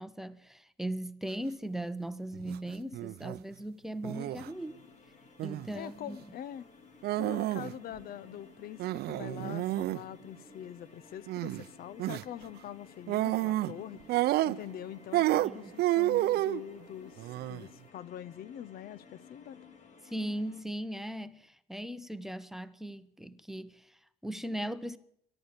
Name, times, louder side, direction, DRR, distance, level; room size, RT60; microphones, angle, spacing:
voice 1, 0.0-4.8 5.4-6.2 15.4-15.7 20.0-25.0, right 1 dB, ahead, 0.8 m, -38 dB
sound 1, 2.3-2.6 2.9-3.4 4.0-4.5 5.4-5.8 7.0-7.7 8.0-8.1 8.8-10.0 11.3-11.6 12.0-12.2 13.1-13.7 14.1-14.8 15.1-16.6 17.2-17.6, right 16 dB, 70° right, 0.5 m, -30 dB
sound 2, 4.1-20.6, left 5 dB, 45° left, 2.3 m, -56 dB
voice 2, 5.7-6.7 7.1-19.6, left 10 dB, 60° left, 0.7 m, -44 dB
13.5 x 12.0 x 8.3 m
cardioid pair, 110°, 17 cm